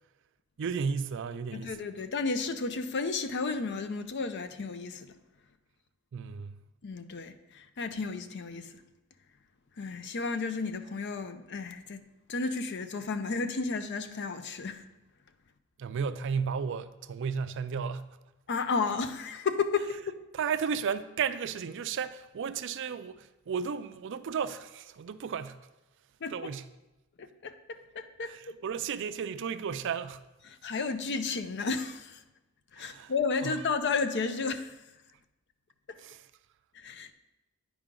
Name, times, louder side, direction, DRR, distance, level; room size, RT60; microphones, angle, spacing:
voice 1, 0.6-1.8 6.1-6.6 15.8-18.1 20.3-25.6 26.3-26.7 28.2-30.2 32.8-33.1 33.4-33.6 36.0-36.3, right 6 dB, 55° right, 0.4 m, -34 dB
voice 2, 1.5-5.1 6.8-8.7 9.8-12.0 12.3-14.8 18.5-20.2 26.2-26.3 27.2-28.3 30.5-32.2 32.7-34.8 36.7-37.1, left 4 dB, 50° left, 0.5 m, -33 dB
10.0 x 4.9 x 3.7 m
head